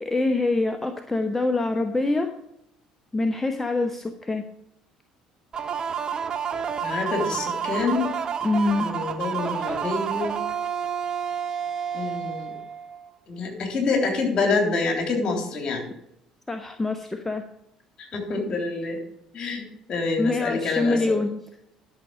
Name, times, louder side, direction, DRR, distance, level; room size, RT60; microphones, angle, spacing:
voice 1, 0.0-2.3 3.1-4.4 8.4-8.9 16.5-17.4 20.2-21.4, left 2 dB, 10° left, 5 dB, 1.0 m, -25 dB
sound 1, 5.5-13.1, right 7 dB, 40° right, 1.1 m, -29 dB
voice 2, 6.8-8.1 8.8-10.4 11.9-12.5 13.3-15.8 18.0-19.0 19.3-21.2, left 3 dB, 45° left, 1 dB, 3.5 m, -27 dB
11.5 x 6.3 x 6.3 m, 0.78 s
figure-of-eight pair, 55°, 2 cm